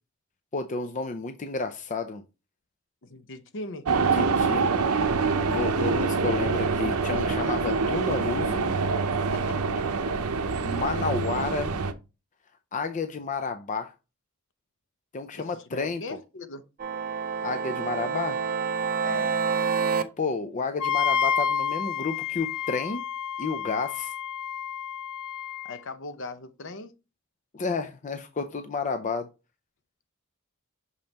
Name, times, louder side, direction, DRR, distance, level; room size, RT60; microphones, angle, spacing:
voice 1, 0.5-2.2 4.1-4.7 5.5-8.6 10.6-11.7 12.7-13.9 15.1-16.0 17.4-18.4 20.2-23.1 23.4-24.1 27.5-29.3, left 4 dB, 35° left, 0.5 m, -31 dB
voice 2, 3.0-3.9 9.3-10.2 15.4-16.6 19.0-19.4 25.7-26.9, left 2 dB, 60° left, 0.8 m, -39 dB
sound 1, 3.9-11.9, right 4 dB, 80° right, 0.7 m, -25 dB
sound 2, 16.8-20.0, right 6 dB, 40° right, 0.7 m, -27 dB
Wind instrument woodwind instrument, 20.8-25.8, left 7 dB, 85° left, 0.5 m, -29 dB
6.6 x 5.3 x 2.9 m
head